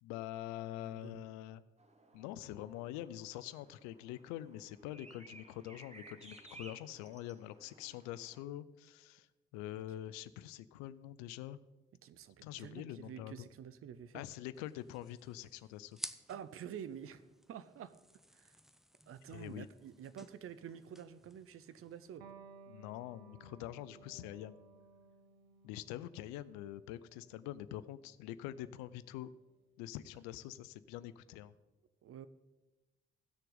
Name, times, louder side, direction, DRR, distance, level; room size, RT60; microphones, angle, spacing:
voice 1, 0.0-1.6 2.1-9.3 9.5-11.6 12.4-13.5 14.1-16.0 19.3-19.7 22.7-24.6 25.6-29.3 29.8-31.5, left 13 dB, 70° left, 16 dB, 0.5 m, -45 dB
voice 2, 0.8-1.2 9.7-9.8 12.0-14.2 16.3-18.0 18.3-18.6 19.1-22.3 32.0-32.3, right 9 dB, 50° right, 14 dB, 0.6 m, -49 dB
sound 1, 1.8-8.4, right 2 dB, 20° right, 1.3 m, -58 dB
sound 2, 14.5-22.2, equal, ahead, 0.5 m, -54 dB
Electric guitar, 22.2-29.3, right 4 dB, 85° right, 0.6 m, -60 dB
15.5 x 6.5 x 3.9 m, 1.1 s
hypercardioid pair, 40°, 29 cm